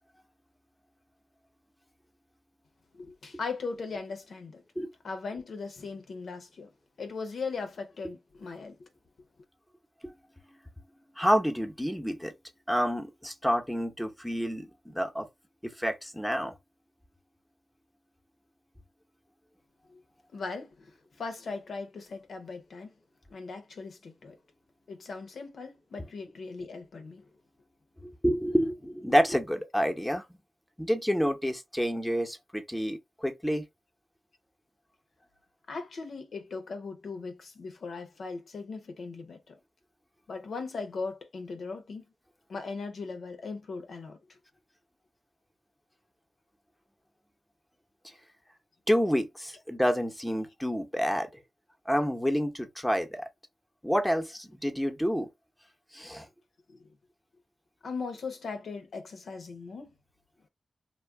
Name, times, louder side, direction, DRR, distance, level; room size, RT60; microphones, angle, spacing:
voice 1, 3.0-4.6 5.0-6.7 7.0-8.9 19.9-20.0 20.3-20.9 21.2-22.9 23.3-24.4 24.9-27.2 35.7-39.6 40.3-42.0 42.5-44.2 56.7-56.8 57.8-59.9, left 4 dB, 70° left, 0.7 m, -38 dB
voice 2, 11.2-12.3 12.7-15.3 15.6-16.5 28.0-30.2 30.8-33.6 48.9-51.4 51.9-53.3 53.8-55.3 55.9-56.3, equal, 5° left, 0.7 m, -28 dB
2.3 x 2.1 x 3.4 m
cardioid pair, 55°, 0 cm